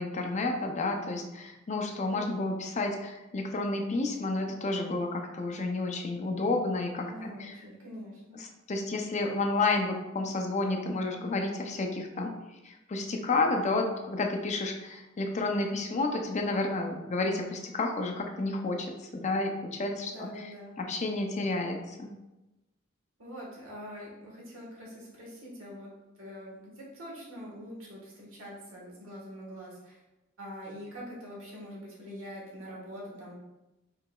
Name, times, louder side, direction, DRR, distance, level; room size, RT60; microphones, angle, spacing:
voice 1, 0.0-7.6 8.4-12.3 12.6-20.3 20.8-22.1, left 2 dB, 35° left, 3 dB, 0.5 m, -31 dB
voice 2, 2.1-2.5 7.0-8.4 15.5-15.8 20.1-20.7 23.2-25.9 26.2-30.0 30.4-33.3, equal, 85° right, -4 dB, 1.5 m, -44 dB
4.8 x 3.9 x 2.3 m, 1.0 s
head